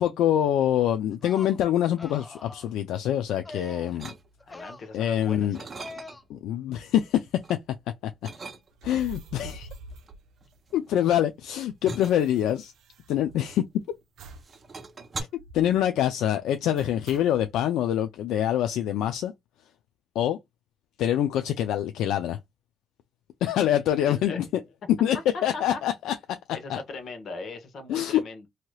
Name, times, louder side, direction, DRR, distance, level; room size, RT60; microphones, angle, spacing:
voice 1, 0.0-4.1 4.9-5.6 6.3-7.3 8.0-8.1 8.8-9.7 10.7-12.7 13.1-13.6 15.2-15.3 15.5-19.3 20.2-20.4 21.0-22.4 23.4-24.4 25.0-26.4 26.7-26.8 27.9-28.2, left 11 dB, 85° left, 0.3 m, -25 dB
sound 1, 1.1-1.6 2.0-2.7 3.4-4.0 4.4-4.9 5.8-6.2, left 2 dB, 20° left, 0.5 m, -43 dB
sound 2, 4.0-4.7 5.1-6.4 6.8-7.6 8.2-9.1 9.9-14.0 14.3-15.2, right 3 dB, 35° right, 0.8 m, -41 dB
voice 2, 4.5-5.7 24.1-24.5 25.5-25.8 26.5-28.5, left 3 dB, 60° left, 1.0 m, -39 dB
sound 3, 8.7-11.0 11.3-11.4 11.6-13.7 14.2-14.6 14.9-15.0 15.4-15.8 16.8-17.5, right 3 dB, 75° right, 0.6 m, -46 dB
3.2 x 2.8 x 2.3 m
cardioid pair, 90°, 0 cm